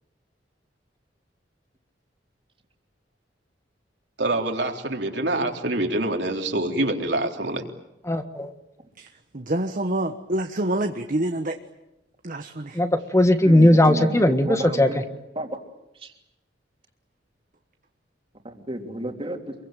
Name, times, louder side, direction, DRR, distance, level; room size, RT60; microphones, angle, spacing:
voice 1, 4.2-7.6, right 2 dB, 70° right, 3 dB, 3.6 m, -25 dB
voice 2, 8.1-8.5 12.7-14.9, left 1 dB, 15° left, 7 dB, 1.6 m, -18 dB
voice 3, 9.3-11.6 12.2-12.8, right 1 dB, 45° right, 6 dB, 1.4 m, -27 dB
voice 4, 13.4-15.0 15.3-15.5 15.9-16.2 18.4-19.5, right 1 dB, 30° right, 3 dB, 3.2 m, -32 dB
27.0 x 23.0 x 9.1 m, 0.90 s
head